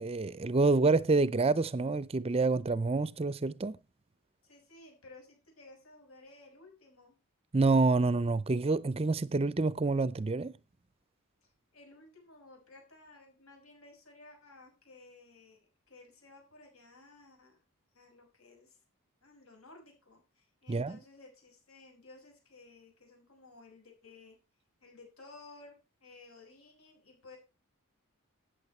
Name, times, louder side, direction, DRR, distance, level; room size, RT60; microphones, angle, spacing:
voice 1, 0.0-3.8 7.5-10.5 20.7-21.0, right 3 dB, 25° right, 0.5 m, -27 dB
voice 2, 4.4-7.2 11.4-15.6 15.9-17.6 17.9-18.8 19.2-24.4 24.8-25.7 26.0-27.4, left 3 dB, 75° left, 6.5 m, -56 dB
13.5 x 9.1 x 4.4 m
head